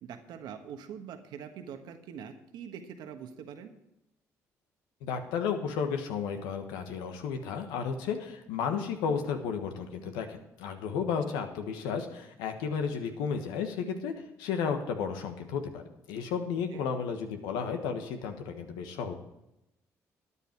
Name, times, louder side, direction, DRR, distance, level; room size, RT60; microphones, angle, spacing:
voice 1, 0.0-3.7 16.7-16.9, right 8 dB, 75° right, 7 dB, 1.4 m, -43 dB
voice 2, 5.0-19.1, left 6 dB, 85° left, 6 dB, 1.4 m, -33 dB
12.5 x 10.0 x 4.6 m, 0.88 s
supercardioid pair, 60°, 7 cm